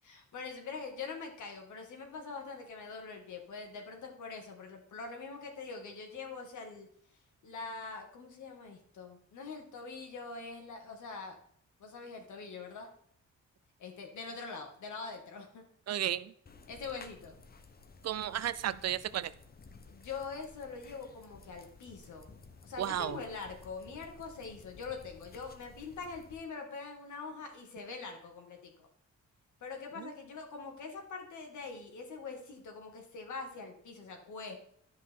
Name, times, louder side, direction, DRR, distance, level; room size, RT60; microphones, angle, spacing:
voice 1, 0.0-6.9 7.4-11.4 11.8-12.9 13.8-15.6 16.7-17.4 19.9-22.3 22.6-28.9 29.6-34.6, left 4 dB, 85° left, 3 dB, 2.1 m, -44 dB
voice 2, 15.9-16.3 18.0-19.3 22.8-23.2 30.0-30.1, right 11 dB, 60° right, 16 dB, 0.5 m, -33 dB
sound 1, 16.5-26.5, left 4 dB, 30° left, 0.9 m, -55 dB
13.0 x 5.2 x 3.6 m, 0.65 s
wide cardioid pair, 125°, 29 cm